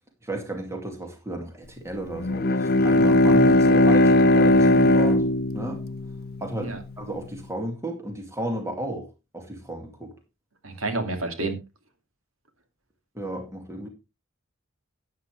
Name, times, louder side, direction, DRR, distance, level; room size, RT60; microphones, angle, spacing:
voice 1, 0.2-5.2 5.5-5.8 6.4-9.1 9.3-10.1 13.1-13.9, right 1 dB, 15° right, 2.3 m, -33 dB
Bowed string instrument, 2.1-6.8, left 1 dB, 50° left, 0.6 m, -19 dB
voice 2, 10.6-11.5, right 2 dB, 75° right, 2.4 m, -29 dB
12.0 x 9.5 x 3.3 m
head